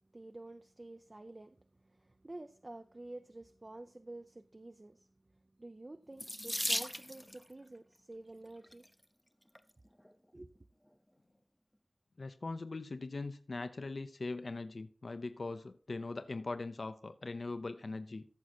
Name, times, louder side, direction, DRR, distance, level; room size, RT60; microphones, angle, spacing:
voice 1, 0.1-1.6 1.8-5.1 5.6-8.9 10.3-10.5, right 2 dB, 35° right, 0.6 m, -50 dB
Water tap faucet / Sink (filling or washing), 6.2-7.4 8.5-8.9 9.5-9.6 10.0-10.1, equal, 5° left, 0.7 m, -37 dB
voice 2, 12.2-18.3, left 3 dB, 65° left, 0.6 m, -41 dB
14.0 x 6.3 x 4.3 m
wide cardioid pair, 70°, 0 cm